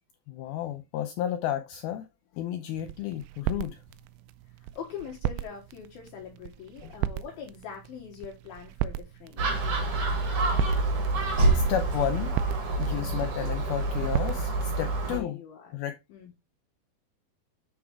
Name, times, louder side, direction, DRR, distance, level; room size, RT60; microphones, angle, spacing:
voice 1, 0.3-2.1 2.3-3.8 6.8-6.9 11.3-12.3 12.8-15.4 15.7-16.0, left 11 dB, 90° left, 2.1 m, -32 dB
sound 1, 2.7-14.7, right 14 dB, 85° right, 2.3 m, -37 dB
voice 2, 4.7-9.6 12.9-13.4 15.0-15.7 16.1-16.3, left 7 dB, 65° left, 2.9 m, -42 dB
Gull seagull, 9.4-15.2, right 2 dB, 50° right, 1.8 m, -27 dB
8.7 x 4.8 x 3.4 m
omnidirectional pair, 5.0 m